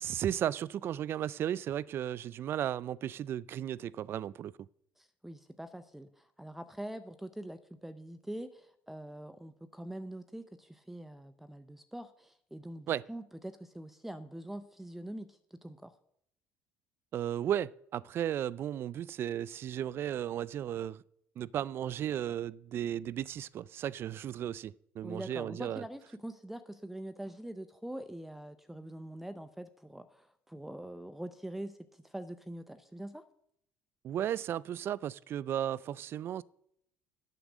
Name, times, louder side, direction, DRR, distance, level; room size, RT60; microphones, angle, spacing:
voice 1, 0.0-4.5 12.9-13.1 17.1-21.0 21.4-25.8 34.0-36.4, right 10 dB, 50° right, 0.3 m, -35 dB
voice 2, 5.0-15.9 25.0-33.2, right 1 dB, 5° right, 0.6 m, -44 dB
8.1 x 7.8 x 6.1 m
supercardioid pair, 90°, 5 cm